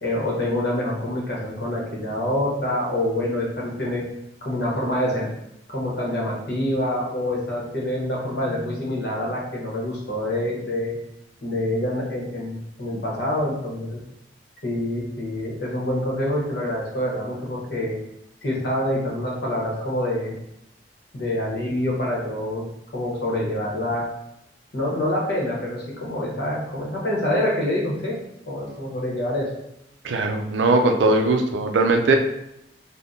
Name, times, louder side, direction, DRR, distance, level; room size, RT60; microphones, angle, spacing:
voice 1, 0.0-4.0 4.4-5.3 5.7-11.0 11.4-14.0 14.6-17.9 18.4-20.4 21.1-22.7 22.9-24.0 24.7-28.2 28.5-29.5, left 1 dB, 60° left, -4 dB, 0.9 m, -26 dB
voice 2, 30.0-32.2, right 2 dB, 85° right, 4 dB, 0.4 m, -19 dB
3.4 x 2.1 x 2.6 m, 0.82 s
head